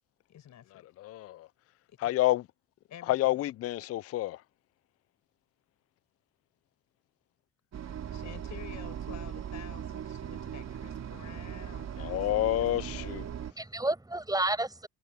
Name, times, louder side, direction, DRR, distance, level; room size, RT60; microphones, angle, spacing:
voice 1, 0.3-0.9 2.0-2.3 2.9-3.4 8.1-13.2, left 10 dB, 70° left, 7.5 m, -50 dB
voice 2, 1.0-1.4 2.0-2.4 3.1-4.4 12.0-13.2, left 15 dB, 50° left, 0.4 m, -28 dB
sound 1, 7.7-13.5, right 9 dB, 60° right, 3.5 m, -39 dB
voice 3, 11.1-11.5 12.0-14.9, right 2 dB, 10° right, 6.3 m, -34 dB
cardioid pair, 90°, 30 cm